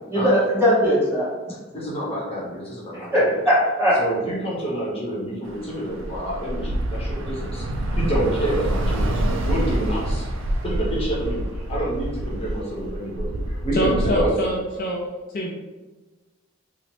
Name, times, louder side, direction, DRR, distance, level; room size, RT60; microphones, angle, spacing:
voice 1, 0.1-1.3 2.9-4.0, equal, 10° right, -9 dB, 1.1 m, -19 dB
voice 2, 1.7-3.3 4.0-7.6 7.9-10.3 10.6-14.3, right 1 dB, 30° left, -6 dB, 0.8 m, -28 dB
Bus / Traffic noise roadway noise, 5.4-14.2, right 1 dB, 65° right, 0.4 m, -26 dB
voice 3, 13.7-15.0 15.3-15.5, right 1 dB, 45° left, -2 dB, 0.4 m, -25 dB
2.8 x 2.0 x 3.0 m, 1.2 s
head